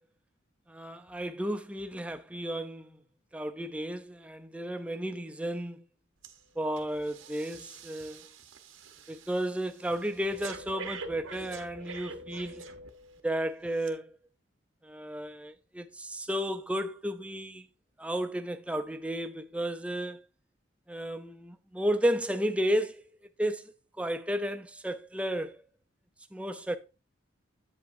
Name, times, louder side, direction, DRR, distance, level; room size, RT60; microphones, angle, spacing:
voice 1, 0.7-3.0 3.3-5.8 6.6-8.2 9.1-12.6 13.2-14.1 14.8-17.7 18.0-20.2 20.9-23.0 23.4-23.6 24.0-25.6 26.3-26.8, equal, 5° right, 0.4 m, -33 dB
Breathing, 6.2-6.4 6.8-13.2 13.8-13.9, right 3 dB, 85° right, 1.0 m, -45 dB
8.1 x 7.7 x 2.6 m
head